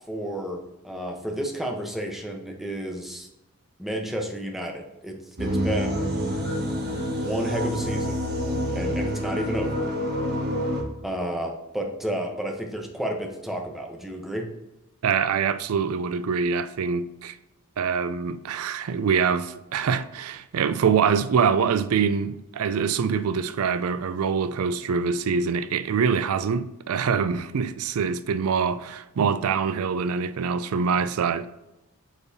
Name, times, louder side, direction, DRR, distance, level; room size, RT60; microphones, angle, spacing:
voice 1, 0.1-3.3 3.8-6.1 7.2-8.2 8.7-9.9 11.0-14.5, right 1 dB, ahead, 0.9 m, -31 dB
sound 1, 5.4-10.8, equal, 50° right, 1.6 m, -27 dB
voice 2, 15.0-17.4 17.8-31.5, right 6 dB, 80° right, 0.4 m, -24 dB
8.2 x 5.4 x 2.8 m
head